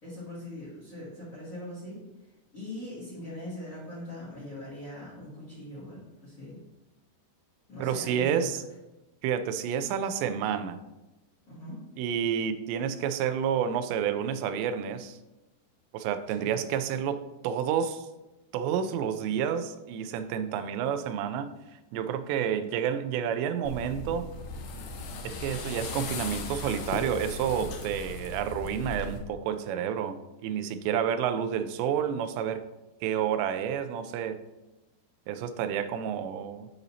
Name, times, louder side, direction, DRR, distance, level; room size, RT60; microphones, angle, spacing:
voice 1, 0.0-2.0 2.5-6.6 7.7-8.6 11.5-11.8 16.3-16.6, left 1 dB, 30° left, -11 dB, 1.7 m, -41 dB
voice 2, 7.8-8.6 9.2-10.8 12.0-15.2 15.9-18.1 18.5-21.5 21.9-24.3 25.2-32.6 33.0-34.4 35.3-36.7, right 8 dB, 90° right, 10 dB, 2.8 m, -30 dB
sound 1, 23.6-29.2, left 3 dB, 75° left, 2.2 m, -37 dB
12.0 x 4.0 x 2.8 m, 0.99 s
omnidirectional pair, 4.9 m